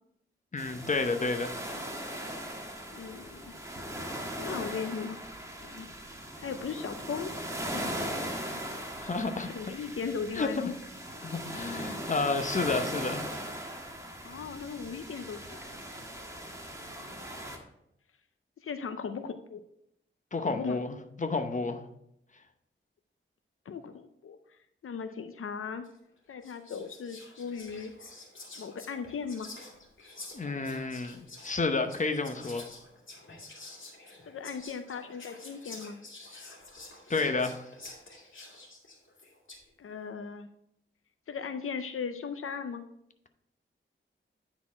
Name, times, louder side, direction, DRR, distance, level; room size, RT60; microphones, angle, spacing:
voice 1, 0.5-1.5 9.0-9.5 10.4-10.5 11.2-13.2 20.3-21.8 30.3-32.6 37.1-37.6, left 3 dB, 35° left, 7 dB, 0.8 m, -30 dB
sound 1, 0.6-17.6, equal, 15° right, 1.4 m, -39 dB
voice 2, 2.9-3.5 4.4-5.2 5.6-5.9 6.4-7.3 7.7-8.6 9.4-10.8 14.2-15.8 17.1-17.3 18.6-19.6 20.4-20.8 23.7-24.4 24.8-25.9 26.3-27.9 28.6-29.5 34.3-36.0 39.8-40.5 41.3-42.8, left 6 dB, 85° left, 9 dB, 0.5 m, -38 dB
Whispering, 25.8-26.1 26.4-39.7, left 2 dB, 65° left, 2.2 m, -49 dB
9.6 x 4.2 x 4.2 m, 0.77 s
wide cardioid pair, 70°, 21 cm